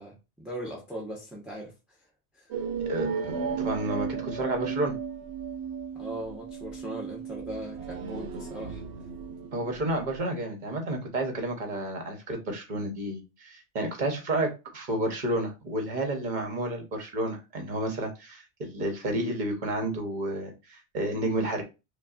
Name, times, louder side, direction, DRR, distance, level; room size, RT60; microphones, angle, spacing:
voice 1, 0.0-1.7 2.3-2.5 5.9-8.8, right 1 dB, ahead, 0.9 m, -39 dB
sound 1, 2.5-10.2, right 6 dB, 85° right, 0.9 m, -35 dB
voice 2, 2.9-5.0 9.5-21.6, right 1 dB, 45° right, 1.0 m, -31 dB
5.4 x 2.3 x 2.4 m
omnidirectional pair, 1.1 m